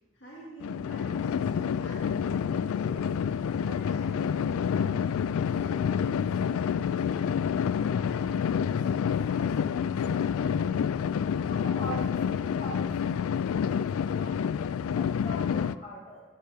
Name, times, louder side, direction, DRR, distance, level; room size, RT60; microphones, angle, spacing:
voice 1, 0.1-7.3 7.7-10.8, equal, 65° left, -5 dB, 2.1 m, -47 dB
sound 1, 0.6-15.8, left 7 dB, 90° left, 0.3 m, -28 dB
voice 2, 11.5-13.4 13.9-14.5 14.8-16.2, equal, 35° left, -6 dB, 3.3 m, -42 dB
12.0 x 10.0 x 3.6 m, 1.3 s
head